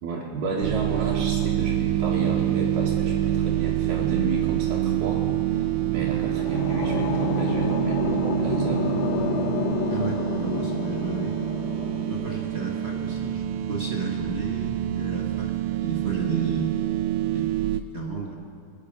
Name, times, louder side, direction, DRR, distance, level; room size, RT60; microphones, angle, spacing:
voice 1, 0.0-8.8, right 3 dB, 75° right, -6 dB, 3.2 m, -32 dB
sound 1, 0.6-17.8, right 12 dB, 90° right, 2.1 m, -26 dB
sound 2, 6.0-13.1, left 11 dB, 80° left, 1.9 m, -31 dB
voice 2, 9.9-11.3 12.1-16.7 17.3-17.7 17.9-18.4, right 4 dB, 45° right, -2 dB, 0.8 m, -33 dB
26.0 x 9.2 x 5.4 m, 2.5 s
omnidirectional pair, 3.7 m